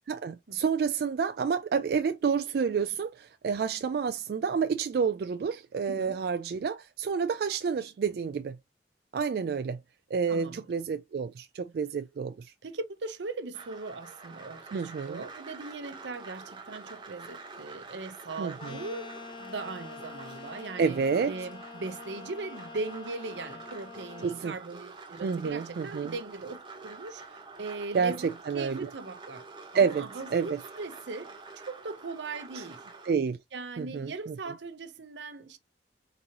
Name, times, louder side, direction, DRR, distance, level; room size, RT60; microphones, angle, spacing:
voice 1, 0.1-8.6 9.1-9.8 10.1-12.5 14.7-15.2 18.4-18.8 20.8-21.3 24.2-24.5 25.2-26.1 27.9-28.9 29.7-30.6 32.6-32.7 33.1-33.4 33.8-34.5, right 6 dB, 60° right, 0.3 m, -29 dB
voice 2, 10.3-10.6 12.6-19.1 19.4-29.5 29.7-32.8 33.5-35.6, right 3 dB, 85° right, 0.7 m, -39 dB
sound 1, 13.5-33.1, right 4 dB, 25° right, 0.9 m, -47 dB
sound 2, 18.6-24.4, left 5 dB, 25° left, 0.4 m, -46 dB
3.8 x 2.9 x 2.9 m
head